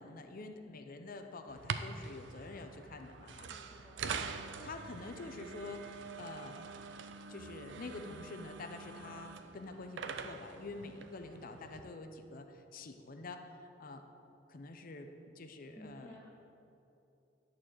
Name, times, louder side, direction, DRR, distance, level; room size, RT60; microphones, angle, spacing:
voice 1, 0.0-4.1 4.6-6.7 7.3-14.0 14.5-16.1, left 3 dB, 50° left, 6 dB, 0.6 m, -47 dB
sound 1, 1.5-11.8, right 5 dB, 85° right, 0.5 m, -44 dB
voice 2, 3.3-4.4 15.7-16.4, equal, 5° left, -3 dB, 0.7 m, -55 dB
11.0 x 4.4 x 7.6 m, 2.9 s
head